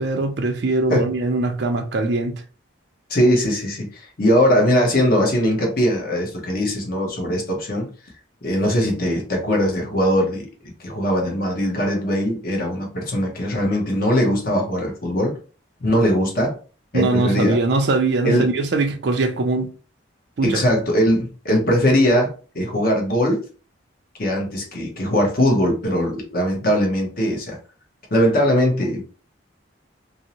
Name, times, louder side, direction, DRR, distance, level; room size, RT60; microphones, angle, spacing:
voice 1, 0.0-2.4 16.9-19.7 20.4-20.8, right 2 dB, 60° right, 0.4 m, -21 dB
voice 2, 3.1-7.9 8.4-10.4 10.8-15.3 15.8-16.6 16.9-17.6 18.2-18.5 20.4-23.4 24.2-27.6 28.1-29.0, equal, 45° left, 0.8 m, -20 dB
2.6 x 2.0 x 2.8 m
head